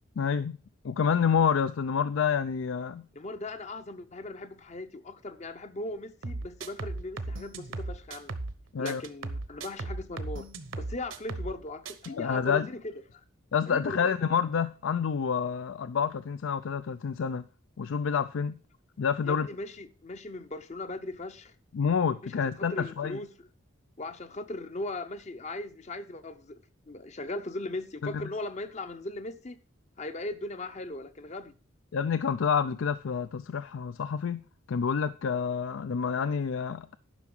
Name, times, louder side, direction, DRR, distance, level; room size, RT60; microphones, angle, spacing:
voice 1, 0.2-0.6 0.8-3.0 8.7-9.0 12.1-12.7 13.5-17.4 17.8-18.6 19.0-19.5 21.7-23.2 28.0-28.1 31.9-37.0, left 6 dB, 70° left, 0.4 m, -28 dB
voice 2, 3.1-8.3 8.8-10.4 10.8-13.2 13.7-14.1 19.2-21.5 22.2-23.5 24.0-29.6 30.0-31.5, left 2 dB, 35° left, 0.7 m, -38 dB
sound 1, 6.2-8.6 8.9-11.6 11.9-12.1, right 2 dB, 70° right, 0.9 m, -37 dB
11.0 x 5.8 x 6.0 m
head